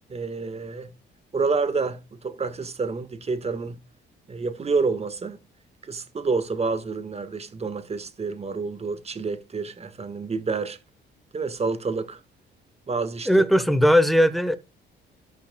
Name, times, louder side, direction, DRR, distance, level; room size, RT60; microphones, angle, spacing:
voice 1, 0.1-0.9 1.3-3.8 4.3-5.4 5.8-10.8 11.3-12.2 12.9-13.3, right 4 dB, 30° right, 1.4 m, -28 dB
voice 2, 13.3-14.6, equal, ahead, 1.0 m, -18 dB
17.0 x 5.9 x 2.2 m
cardioid pair, 90°, 20 cm